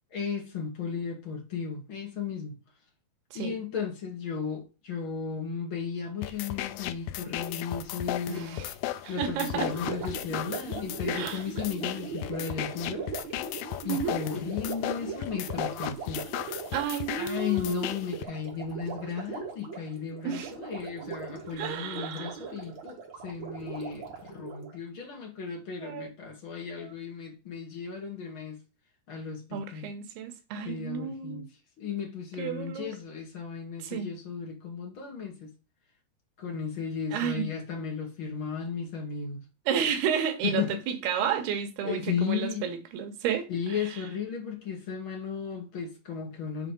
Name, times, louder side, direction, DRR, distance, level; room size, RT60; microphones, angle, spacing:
voice 1, 0.1-2.6 3.3-8.6 9.1-13.5 13.8-16.3 17.2-28.6 29.1-29.9 30.6-31.5 31.8-35.5 36.4-39.4 40.4-40.8 41.2-41.5 41.8-42.7 43.5-46.7, left 6 dB, 40° left, 2.2 m, -35 dB
sound 1, 6.2-18.2, left 13 dB, 80° left, 2.3 m, -36 dB
voice 2, 8.3-8.7 9.0-9.7 11.1-11.4 13.9-14.2 16.7-17.9 20.2-20.5 21.6-22.4 25.8-26.1 26.8-26.9 29.5-31.5 32.4-32.9 33.8-34.1 37.1-37.5 39.7-43.8, right 8 dB, 85° right, 2.9 m, -31 dB
Gurgling, 9.5-24.8, right 5 dB, 45° right, 1.8 m, -40 dB
7.8 x 3.6 x 5.1 m
omnidirectional pair, 4.3 m